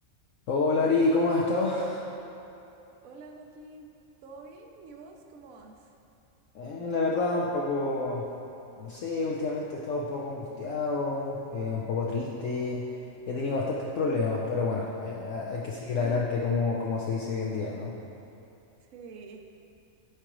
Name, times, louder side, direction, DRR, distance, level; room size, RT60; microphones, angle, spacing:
voice 1, 0.5-2.1 6.5-8.3 8.8-18.0, left 3 dB, 65° left, -4 dB, 1.0 m, -28 dB
voice 2, 3.0-3.9 4.2-5.9 18.8-19.4, right 3 dB, 70° right, 2 dB, 1.1 m, -48 dB
13.0 x 4.9 x 3.0 m, 2.9 s
omnidirectional pair, 1.5 m